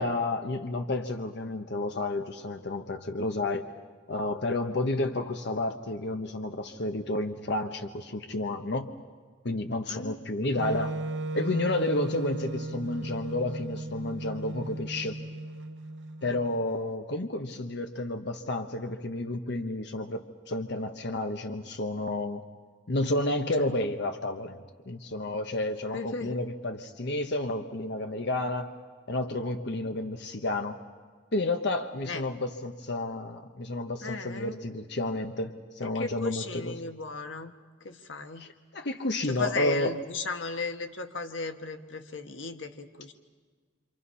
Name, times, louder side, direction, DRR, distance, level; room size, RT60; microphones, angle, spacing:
voice 1, 0.0-3.6 4.1-8.9 9.4-10.9 11.3-15.2 16.2-22.4 22.9-24.6 24.9-28.7 29.1-30.8 31.3-36.7 38.4-39.9, left 2 dB, 65° left, 6 dB, 1.1 m, -31 dB
Wind instrument woodwind instrument, 10.5-16.6, right 2 dB, 65° right, 0.7 m, -36 dB
voice 2, 25.9-26.4 32.0-32.2 34.0-34.6 35.8-37.5 37.8-38.5 39.3-43.1, left 3 dB, 90° left, 7 dB, 1.4 m, -36 dB
27.5 x 26.5 x 5.7 m, 1.5 s
head